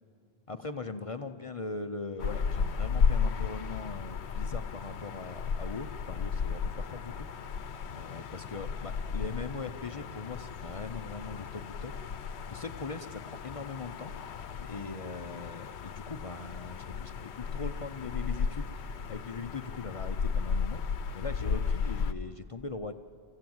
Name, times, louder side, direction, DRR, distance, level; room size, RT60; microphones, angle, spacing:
voice 1, 0.5-7.3 7.9-11.9 12.5-14.1 14.6-20.8 21.1-22.9, left 4 dB, 40° left, 7 dB, 0.6 m, -40 dB
sound 1, 2.2-22.1, left 6 dB, 85° left, 1.0 m, -34 dB
26.5 x 15.5 x 7.8 m, 2.5 s
omnidirectional pair, 1.1 m